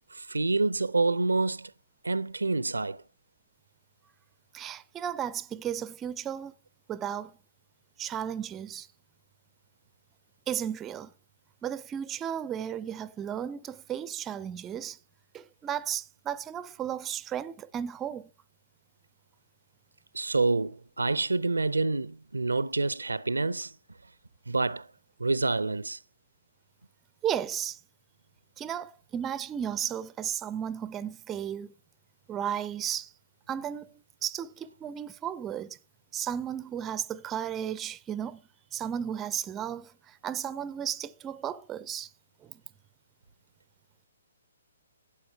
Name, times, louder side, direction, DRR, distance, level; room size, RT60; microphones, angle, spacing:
voice 1, 0.1-1.7 2.0-3.0 20.1-23.7 24.5-24.9 25.2-26.0, right 3 dB, 75° right, 0.5 m, -27 dB
voice 2, 4.5-6.5 6.9-7.3 8.0-8.9 10.5-11.1 11.6-15.0 15.3-18.3 27.2-27.8 28.6-31.7 32.3-33.1 33.5-33.9 34.2-35.8 36.1-38.4 38.7-42.1 42.4-42.6, right 9 dB, 15° right, 0.4 m, -34 dB
12.0 x 8.4 x 4.5 m
figure-of-eight pair, 125°, 0 cm